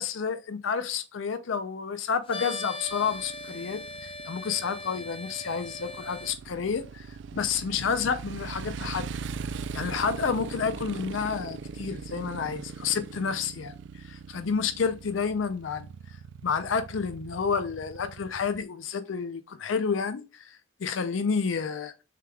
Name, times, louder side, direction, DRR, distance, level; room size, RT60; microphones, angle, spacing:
voice 1, 0.0-7.1 7.3-9.0 9.7-15.9 16.4-22.0, left 6 dB, 85° left, 0.5 m, -30 dB
sound 1, 2.3-6.3, left 2 dB, 30° left, 0.7 m, -39 dB
Motorcycle, 2.9-18.6, right 5 dB, 65° right, 0.3 m, -40 dB
6.5 x 3.4 x 2.3 m
head